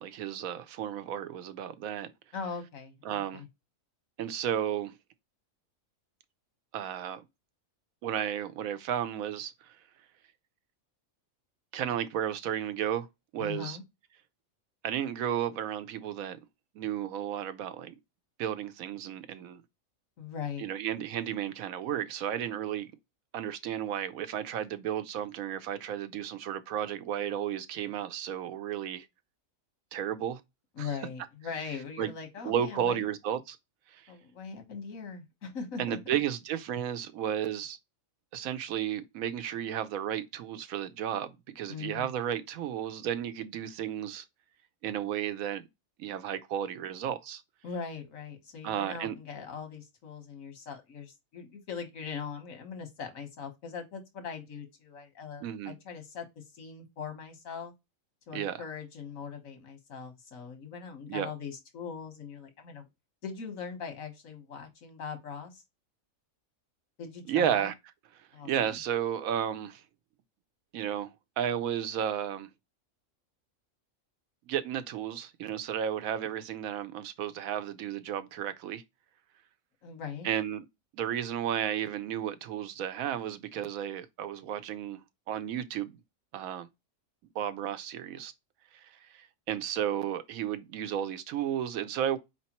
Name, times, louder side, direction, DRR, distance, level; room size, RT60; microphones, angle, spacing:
voice 1, 0.0-2.1 3.0-3.4 4.2-4.9 6.7-7.2 8.0-9.5 11.7-13.1 13.3-13.8 14.8-16.4 16.7-17.9 18.4-19.6 20.6-22.9 23.3-29.1 29.9-30.4 30.8-30.9 32.0-32.1 32.4-33.6 33.9-34.1 35.8-37.8 38.3-44.2 44.8-45.6 46.0-47.4 48.6-49.2 55.4-55.7 58.3-58.6 61.1-61.3 67.3-67.7 68.4-69.8 70.7-72.5 74.5-78.8 80.2-80.6 80.9-86.0 86.3-86.7 87.3-88.3 88.7-92.2, right 9 dB, 90° right, 1.1 m, -33 dB
voice 2, 2.3-3.5 13.4-13.8 20.2-20.7 30.8-33.0 34.1-36.2 41.7-42.1 47.6-57.7 58.3-62.8 63.2-65.6 67.0-67.7 68.3-68.8 79.8-80.3, left 6 dB, 75° left, 1.6 m, -41 dB
4.5 x 3.4 x 2.9 m
omnidirectional pair, 1.4 m